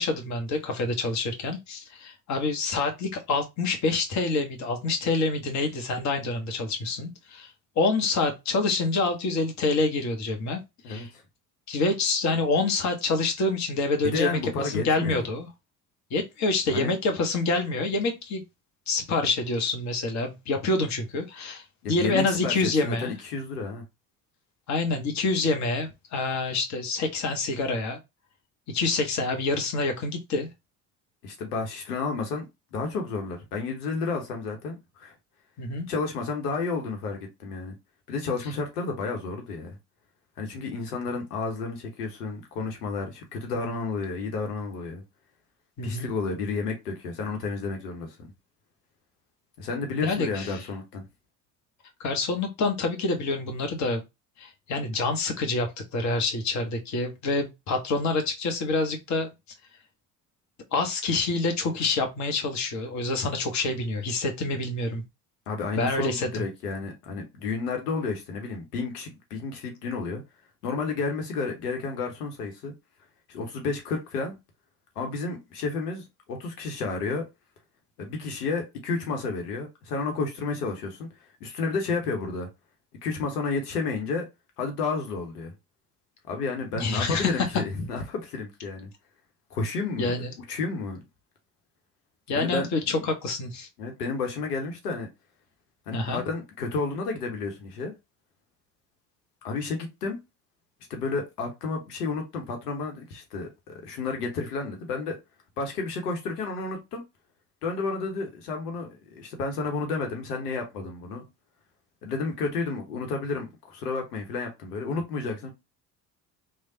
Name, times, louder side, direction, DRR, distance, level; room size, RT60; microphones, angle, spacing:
voice 1, 0.0-7.5 7.8-10.6 10.9-11.1 11.7-15.5 16.1-18.4 18.9-23.1 24.7-28.0 28.7-30.5 35.6-35.9 45.8-46.1 50.0-50.5 52.0-54.0 54.4-59.3 60.7-65.0 65.7-66.4 86.7-87.5 90.0-90.3 92.3-93.7 95.9-96.2, left 3 dB, 35° left, 0.9 m, -27 dB
voice 2, 10.8-11.2 14.0-15.3 16.7-16.9 21.8-22.6 22.8-23.8 31.2-32.4 32.7-35.1 35.9-37.7 38.1-39.8 40.4-45.0 45.8-48.2 49.6-51.1 65.5-70.2 70.6-72.7 73.3-74.3 75.0-77.2 78.0-81.1 81.4-82.5 83.0-84.2 84.6-85.5 86.3-88.9 89.5-90.1 90.5-91.0 92.3-93.1 93.8-95.1 95.9-97.9 99.4-100.2 100.9-105.2 105.6-107.0 107.6-111.2 112.0-115.5, left 4 dB, 75° left, 0.9 m, -31 dB
3.2 x 2.1 x 2.7 m
figure-of-eight pair, 60°, 47 cm